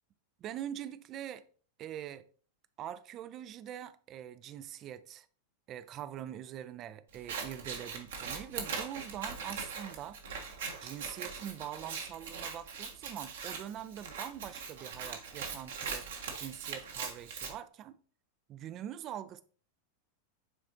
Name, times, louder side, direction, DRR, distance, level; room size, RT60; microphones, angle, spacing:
voice 1, 0.4-1.5 1.8-2.2 2.8-5.3 5.7-10.2 10.8-18.0 18.5-19.4, right 11 dB, 35° right, 0.5 m, -43 dB
Scissors, 7.1-17.5, right 5 dB, 60° right, 1.3 m, -41 dB
9.7 x 4.3 x 2.7 m
figure-of-eight pair, 90°, 0 cm